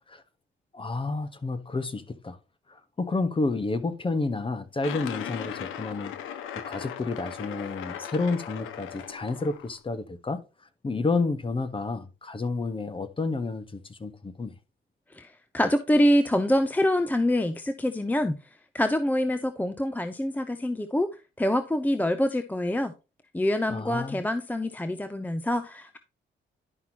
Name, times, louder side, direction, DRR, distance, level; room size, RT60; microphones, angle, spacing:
voice 1, 0.7-2.4 2.7-6.1 6.5-10.4 10.8-14.5 23.7-24.2, left 3 dB, 25° left, 1.2 m, -30 dB
sound 1, 4.8-9.8, left 9 dB, 85° left, 1.1 m, -38 dB
voice 2, 15.1-18.4 18.7-21.1 21.4-22.9 23.3-26.0, left 1 dB, 10° left, 0.7 m, -25 dB
11.0 x 5.8 x 2.9 m
cardioid pair, 90°, 20 cm